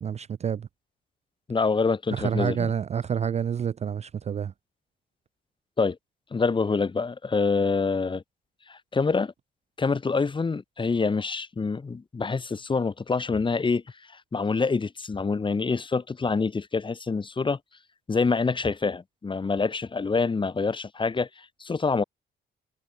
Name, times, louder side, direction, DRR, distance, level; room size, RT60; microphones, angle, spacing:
voice 1, 0.0-0.7 2.1-4.5, right 8 dB, 35° right, 0.4 m, -28 dB
voice 2, 1.5-2.7 5.8-6.0 6.3-8.2 8.7-9.3 9.8-13.8 14.3-17.6 18.1-22.0, left 4 dB, 25° left, 1.0 m, -26 dB
cardioid pair, 90°, 20 cm